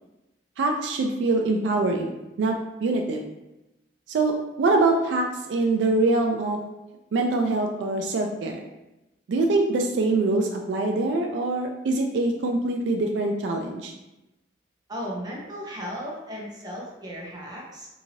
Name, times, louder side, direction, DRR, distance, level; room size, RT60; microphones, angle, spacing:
voice 1, 0.6-2.1 2.4-3.2 4.1-6.6 7.1-8.6 9.3-13.9, right 2 dB, 85° right, 2 dB, 0.3 m, -24 dB
voice 2, 14.9-17.9, equal, 25° right, -3 dB, 0.7 m, -35 dB
2.8 x 2.6 x 2.7 m, 0.97 s
head